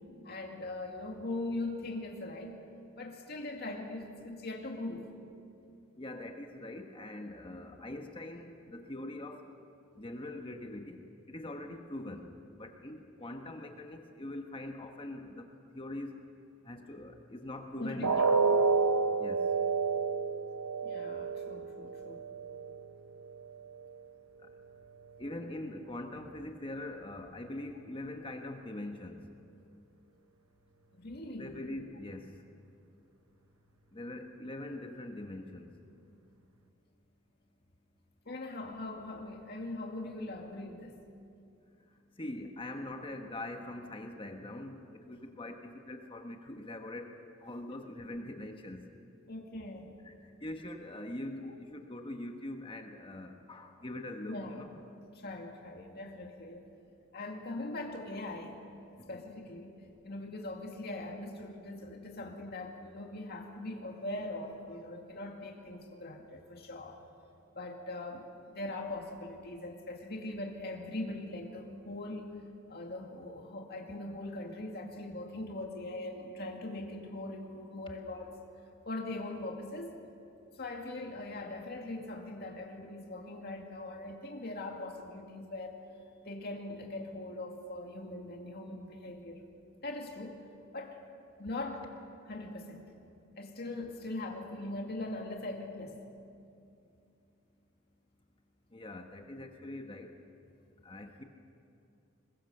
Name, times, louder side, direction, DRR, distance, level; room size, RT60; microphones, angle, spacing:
voice 1, 0.2-2.6 3.0-5.1 17.8-18.3 20.8-22.2 30.9-31.6 38.3-41.0 49.3-49.9 54.3-54.6 55.1-56.6 57.1-58.6 59.1-59.7 60.0-67.0 67.5-72.3 72.7-78.3 78.9-80.0 80.6-85.8 86.2-89.4 89.8-90.4 90.7-91.0 91.4-91.9 92.2-92.8 93.4-96.0, left 2 dB, 50° left, 1 dB, 2.1 m, -41 dB
voice 2, 6.0-9.4 10.0-11.0 11.3-12.3 12.6-15.5 15.7-16.1 16.7-18.2 19.1-19.4 25.2-29.2 31.4-32.3 33.9-35.7 42.2-47.1 47.4-48.8 50.0-50.1 50.4-54.7 59.0-59.2 98.7-100.1 100.8-101.2, left 1 dB, 25° left, 4 dB, 1.2 m, -42 dB
sound 1, 18.0-24.0 24.4-24.6 25.1-25.2, right 4 dB, 90° right, 1.1 m, -30 dB
21.5 x 21.5 x 6.7 m, 2.6 s
head